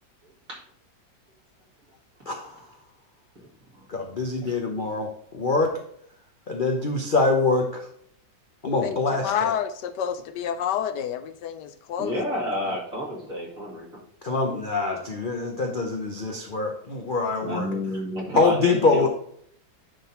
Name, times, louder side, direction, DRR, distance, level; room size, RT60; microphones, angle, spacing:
voice 1, 2.3-2.6 3.9-5.7 6.5-7.9 8.6-9.5 14.2-17.7 18.3-19.1, left 3 dB, 40° left, 2 dB, 0.7 m, -24 dB
voice 2, 8.8-12.2 12.6-12.8, left 9 dB, 75° left, 10 dB, 1.1 m, -29 dB
voice 3, 12.0-14.0 17.4-19.1, left 1 dB, 45° right, -3 dB, 2.8 m, -30 dB
9.9 x 3.9 x 4.2 m, 0.66 s
omnidirectional pair, 2.0 m